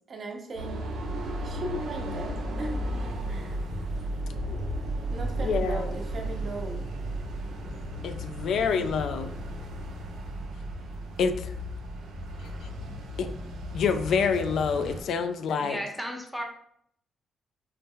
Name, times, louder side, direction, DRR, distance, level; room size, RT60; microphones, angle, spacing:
voice 1, 0.1-0.8 1.1-2.8 3.2-3.6 5.1-6.9, right 1 dB, 45° right, 2 dB, 0.7 m, -38 dB
sound 1, 0.6-15.0, right 1 dB, 85° right, 0.6 m, -34 dB
voice 2, 5.4-5.8 8.0-9.3 11.2-11.5 13.2-13.3 13.7-15.8, left 6 dB, 70° left, 9 dB, 0.3 m, -27 dB
voice 3, 15.6-16.4, equal, 5° left, 2 dB, 0.6 m, -34 dB
4.1 x 2.0 x 3.6 m, 0.69 s
cardioid pair, 130°, 0 cm